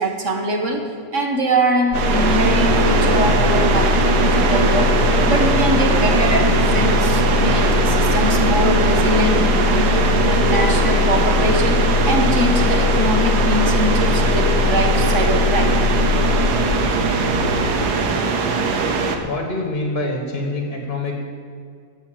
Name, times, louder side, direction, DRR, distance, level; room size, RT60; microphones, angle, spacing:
voice 1, 0.0-4.9 5.3-15.7, right 1 dB, 55° right, 3 dB, 1.4 m, -23 dB
sound 1, 1.9-17.9, left 7 dB, 85° left, 1.4 m, -21 dB
sound 2, 1.9-19.2, right 4 dB, 85° right, 1.6 m, -20 dB
voice 2, 19.2-21.3, left 2 dB, 35° left, 2 dB, 1.5 m, -25 dB
12.0 x 6.3 x 8.9 m, 2.3 s
omnidirectional pair, 1.7 m